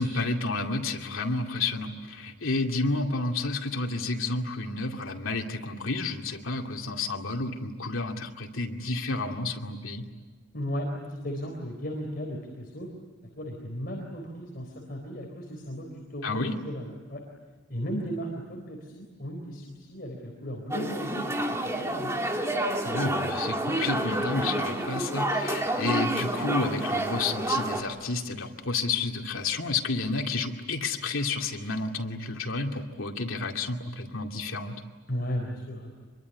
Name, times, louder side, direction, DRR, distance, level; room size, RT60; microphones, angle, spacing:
voice 1, 0.0-10.0 16.2-16.6 22.8-34.8, left 3 dB, 85° left, 3 dB, 2.4 m, -30 dB
voice 2, 10.5-12.9 13.4-17.2 17.7-21.5 21.8-22.2 35.1-35.9, equal, 45° left, 0 dB, 4.0 m, -35 dB
sound 1, 20.7-27.8, right 1 dB, 15° right, 2.1 m, -29 dB
25.5 x 23.0 x 9.7 m, 1.3 s
head